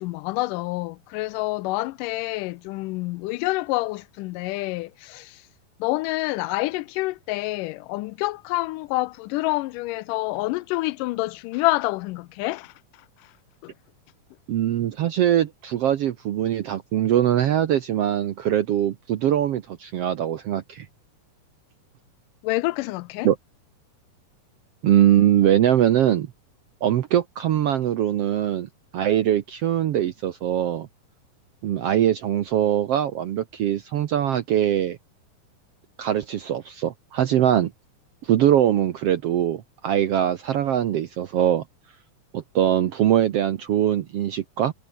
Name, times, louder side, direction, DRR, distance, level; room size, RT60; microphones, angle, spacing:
voice 1, 0.0-5.4 5.8-12.7 13.6-13.7 22.4-23.3, left 20 dB, 80° left, 2.1 m, -27 dB
voice 2, 14.5-20.9 23.2-23.4 24.8-26.3 26.8-30.9 31.6-35.0 36.0-37.7 38.2-41.6 42.3-44.7, right 11 dB, 70° right, 1.5 m, -22 dB
omnidirectional pair, 3.9 m